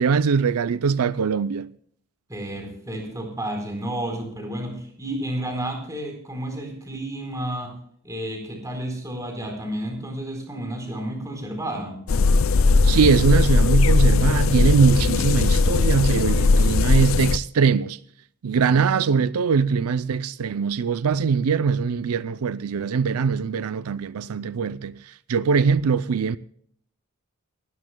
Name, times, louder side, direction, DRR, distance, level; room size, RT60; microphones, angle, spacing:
voice 1, 0.0-1.7 12.8-18.0 18.4-26.4, right 5 dB, 80° right, 0.5 m, -22 dB
voice 2, 2.3-7.8 8.0-12.0, right 1 dB, 15° right, 4.2 m, -31 dB
sound 1, 12.1-17.4, left 3 dB, 60° left, 0.4 m, -18 dB
26.5 x 12.5 x 2.2 m
head